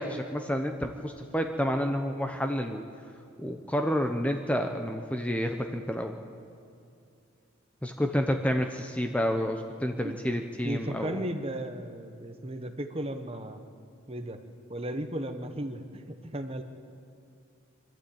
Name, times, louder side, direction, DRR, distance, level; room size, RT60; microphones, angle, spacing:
voice 1, 0.0-2.8 3.4-6.2 7.8-11.2, equal, 5° left, 4 dB, 0.8 m, -29 dB
voice 2, 10.6-13.6 14.1-14.4 14.7-16.6, right 1 dB, 25° right, 7 dB, 1.1 m, -35 dB
25.0 x 12.0 x 8.7 m, 2.6 s
head